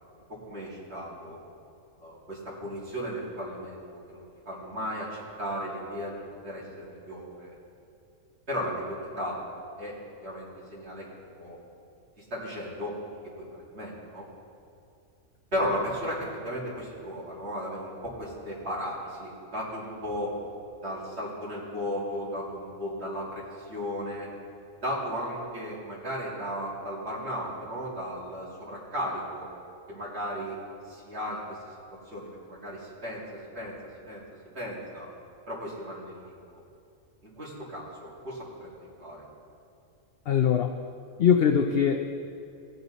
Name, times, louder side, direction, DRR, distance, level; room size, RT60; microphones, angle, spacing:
voice 1, 0.5-1.4 2.0-6.1 6.4-7.5 8.5-9.4 9.8-9.9 10.2-11.1 11.4-11.6 12.2-12.9 13.5-14.2 15.5-20.3 20.8-24.3 24.8-29.4 29.9-30.6 30.9-31.6 32.1-33.2 33.5-33.7 34.1-34.2 34.5-35.1 35.5-36.4 37.2-39.2, equal, 50° right, -8 dB, 2.9 m, -35 dB
voice 2, 40.3-40.7 41.2-42.2, left 8 dB, 60° left, 5 dB, 0.6 m, -22 dB
17.0 x 7.9 x 4.1 m, 2.5 s
omnidirectional pair, 1.5 m